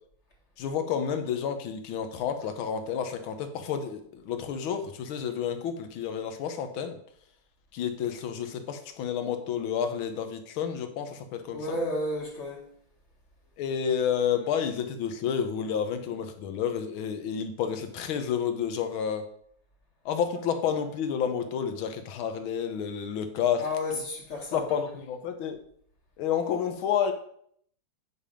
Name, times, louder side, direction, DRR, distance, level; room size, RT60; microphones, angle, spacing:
voice 1, 0.6-7.0 7.7-11.8 13.6-19.2 20.0-23.7 24.5-25.6 26.2-27.1, left 8 dB, 85° left, 1.7 m, -30 dB
voice 2, 11.5-12.7 23.6-24.8, left 1 dB, 35° left, 1.6 m, -32 dB
8.9 x 3.4 x 4.9 m
omnidirectional pair, 2.2 m